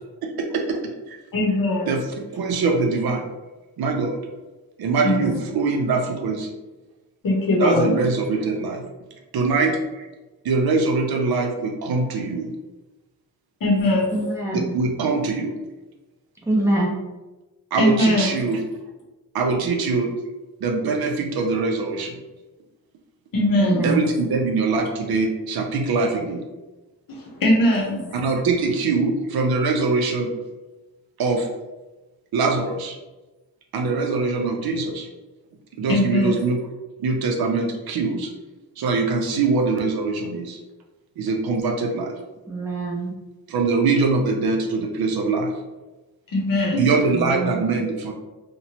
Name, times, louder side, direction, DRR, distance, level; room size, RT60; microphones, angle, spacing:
voice 1, 0.2-0.8 1.1-1.2 1.9-3.2 3.8-4.2 4.8-6.5 7.6-8.8 9.3-10.1 10.4-12.5 14.7-15.5 17.7-18.6 19.3-20.1 20.6-22.1 23.8-26.4 28.1-30.3 31.2-31.5 32.3-33.0 33.7-35.1 35.8-36.6 37.0-38.3 38.8-40.6 41.2-42.1 43.5-45.5 46.7-48.1, right 4 dB, 70° right, 3 dB, 0.5 m, -23 dB
voice 2, 1.3-2.0 5.0-5.3 7.2-7.9 13.6-14.2 17.8-18.3 23.3-23.8 27.1-28.1 35.9-36.4 46.3-46.8, left 1 dB, 55° left, -1 dB, 0.8 m, -20 dB
voice 3, 14.1-14.8 16.5-16.9 23.6-24.0 42.5-43.1 47.1-47.8, right 2 dB, 5° right, -4 dB, 0.6 m, -24 dB
3.0 x 2.1 x 2.8 m, 1.1 s
wide cardioid pair, 130°, 39 cm